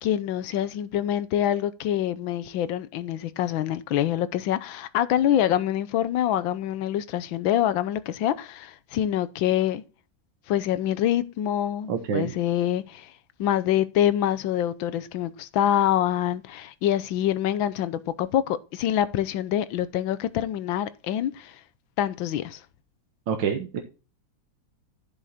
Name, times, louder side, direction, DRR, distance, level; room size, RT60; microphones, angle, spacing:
voice 1, 0.0-9.8 10.5-13.1 13.4-21.6 22.0-22.6, left 11 dB, 80° left, 1.5 m, -25 dB
voice 2, 11.9-12.3 23.3-23.8, right 7 dB, 70° right, 1.7 m, -27 dB
11.0 x 6.3 x 4.1 m
omnidirectional pair, 2.2 m